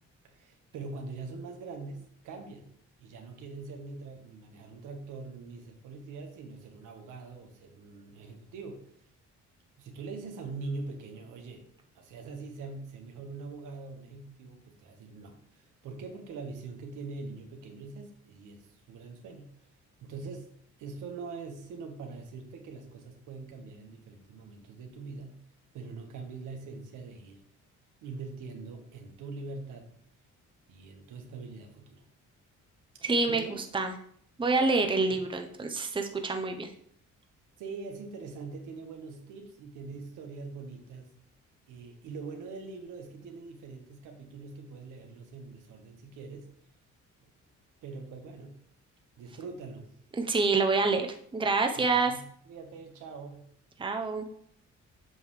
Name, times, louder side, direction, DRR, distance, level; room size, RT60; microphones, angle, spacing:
voice 1, 0.2-2.7 3.0-8.9 9.8-11.6 11.9-19.5 20.0-20.5 20.8-25.4 25.7-27.4 28.0-30.0 30.7-32.1 33.3-33.6 37.6-41.1 41.7-46.5 47.2-47.3 47.8-48.5 49.2-49.9 51.8-53.4, right 4 dB, 85° right, 3 dB, 1.3 m, -43 dB
voice 2, 33.0-33.4 33.7-33.9 34.4-36.7 50.2-51.1 51.3-52.1 53.8-54.3, right 3 dB, 15° right, 5 dB, 0.8 m, -27 dB
8.0 x 5.4 x 3.2 m, 0.65 s
cardioid pair, 90°, 30 cm